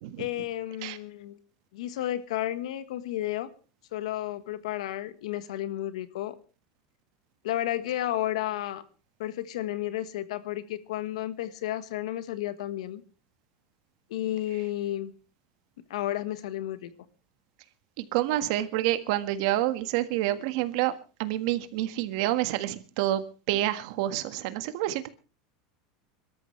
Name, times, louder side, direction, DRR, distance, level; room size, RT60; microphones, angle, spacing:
voice 1, 0.2-1.4 1.7-3.5 3.9-6.3 7.4-8.8 9.2-13.0 14.1-15.1 15.9-16.9, left 13 dB, 85° left, 14 dB, 1.4 m, -32 dB
voice 2, 18.0-20.9 21.2-25.1, right 14 dB, 65° right, 11 dB, 1.7 m, -28 dB
25.0 x 13.5 x 3.3 m, 0.33 s
supercardioid pair, 135°, 3 cm